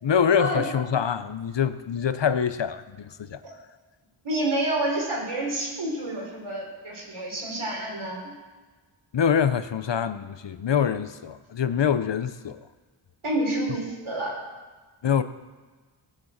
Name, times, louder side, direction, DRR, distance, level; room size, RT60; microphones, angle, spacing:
voice 1, 0.0-3.4 9.1-12.6 15.0-15.2, left 7 dB, 60° left, 12 dB, 0.7 m, -25 dB
voice 2, 4.2-8.3 13.2-14.4, right 1 dB, 80° right, -1 dB, 3.9 m, -28 dB
17.0 x 6.4 x 7.3 m, 1.3 s
wide cardioid pair, 60°, 48 cm